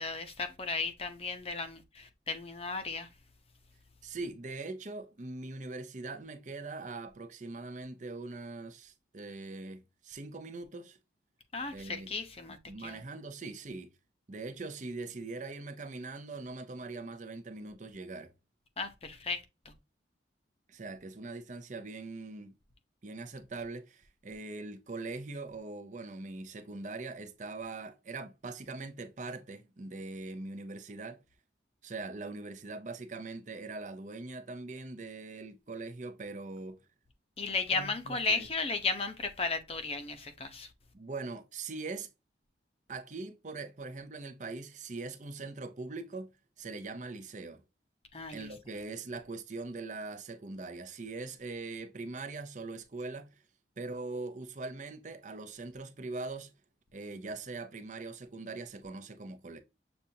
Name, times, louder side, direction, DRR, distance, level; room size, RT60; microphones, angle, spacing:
voice 1, 0.0-3.1 11.5-13.0 18.8-19.4 37.4-40.7 48.1-48.5, left 4 dB, 30° left, 0.7 m, -35 dB
voice 2, 4.0-11.0 11.7-12.1 12.7-14.0 14.3-18.3 20.7-22.5 23.0-31.2 31.8-36.8 37.7-38.5 40.9-42.1 42.9-46.3 46.6-47.6 48.3-53.4 53.8-56.5 56.9-59.6, right 3 dB, 40° right, 0.6 m, -42 dB
6.9 x 2.5 x 2.7 m
head